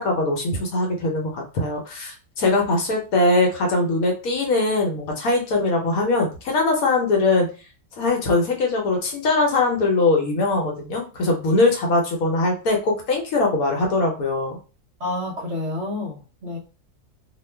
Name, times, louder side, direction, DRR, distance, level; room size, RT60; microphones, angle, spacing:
voice 1, 0.0-7.5 8.0-14.6, left 2 dB, 65° left, 1.1 m, -21 dB
voice 2, 15.0-16.6, left 2 dB, 55° right, 0.9 m, -29 dB
2.9 x 2.3 x 3.2 m
omnidirectional pair, 1.7 m